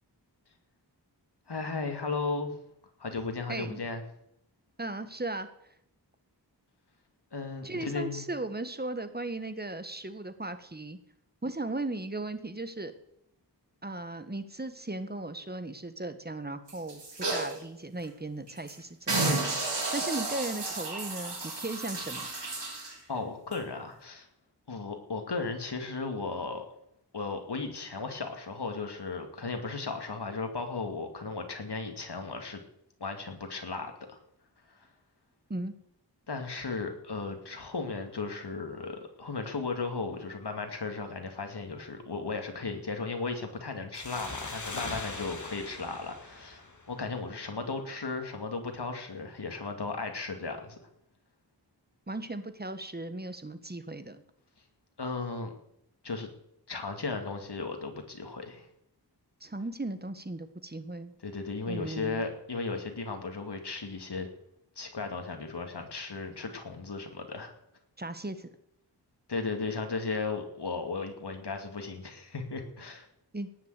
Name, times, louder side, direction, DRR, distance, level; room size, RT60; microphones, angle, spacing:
voice 1, 1.5-2.5 3.0-4.0 7.3-8.2 23.1-24.3 24.7-26.7 27.1-32.6 33.0-34.2 34.7-34.9 36.3-50.8 55.0-55.5 56.0-56.3 56.7-58.7 61.2-64.3 64.8-67.5 69.3-73.1, left 4 dB, 75° left, 5 dB, 2.4 m, -35 dB
voice 2, 3.5-3.8 4.8-5.5 7.6-11.0 11.4-12.9 13.8-17.0 17.3-19.4 19.9-22.3 35.5-35.7 52.1-54.2 59.4-61.1 61.7-62.2 68.0-68.5 73.3-73.5, right 2 dB, 25° right, 10 dB, 1.3 m, -37 dB
sound 1, 16.7-17.6 18.0-18.1 18.5-18.7 19.1-22.9 23.5-23.6, right 3 dB, 85° right, 3.7 m, -32 dB
sound 2, 43.9-47.3, left 2 dB, 45° left, 2.1 m, -41 dB
18.5 x 6.7 x 8.2 m, 0.76 s
wide cardioid pair, 75°, 41 cm